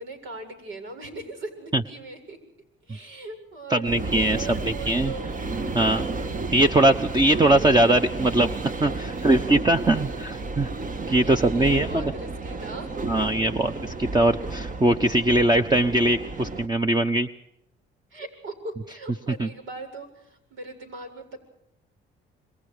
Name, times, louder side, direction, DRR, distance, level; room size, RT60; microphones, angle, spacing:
voice 1, 0.0-2.4 2.9-3.9 4.3-5.3 9.0-9.3 9.7-9.8 11.2-13.3 18.1-21.4, right 2 dB, 80° right, 5 dB, 7.8 m, -39 dB
voice 2, 3.7-5.1 5.7-6.1 6.5-10.7 11.1-12.0 13.1-13.7 14.0-17.3 19.4-19.5, right 1 dB, 20° right, 6 dB, 1.1 m, -21 dB
sound 1, 3.9-16.7, right 3 dB, 40° right, 1.7 m, -32 dB
28.0 x 22.5 x 5.1 m, 0.78 s
cardioid pair, 90°, 20 cm